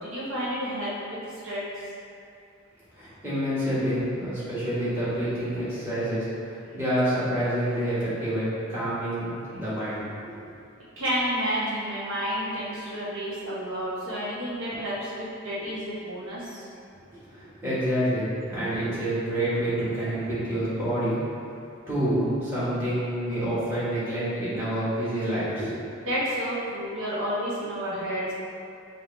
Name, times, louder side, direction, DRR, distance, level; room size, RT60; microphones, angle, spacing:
voice 1, 0.0-1.8 11.0-16.6 26.1-28.3, equal, 85° right, -9 dB, 0.9 m, -30 dB
voice 2, 2.9-10.4 17.1-21.2 21.9-25.7, right 1 dB, 10° right, -12 dB, 1.4 m, -28 dB
4.5 x 2.7 x 3.3 m, 2.6 s
head